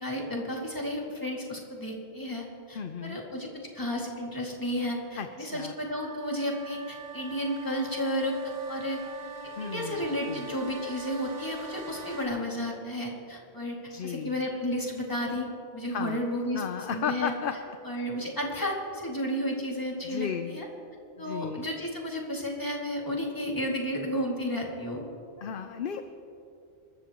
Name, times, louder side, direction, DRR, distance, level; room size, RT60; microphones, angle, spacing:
voice 1, 0.0-3.5 3.7-8.4 8.7-9.0 9.6-13.8 14.0-15.5 15.7-17.3 17.8-20.7 21.2-25.0, equal, 20° left, -2 dB, 2.3 m, -32 dB
voice 2, 2.7-3.2 5.2-5.7 9.6-10.5 13.9-14.4 15.9-16.2 16.5-17.8 20.0-20.6 21.2-21.7 25.4-26.0, left 7 dB, 55° left, 8 dB, 0.7 m, -35 dB
sound 1, 5.8-12.3, right 5 dB, 35° right, 1.5 m, -43 dB
27.5 x 13.5 x 3.0 m, 2.7 s
omnidirectional pair, 1.2 m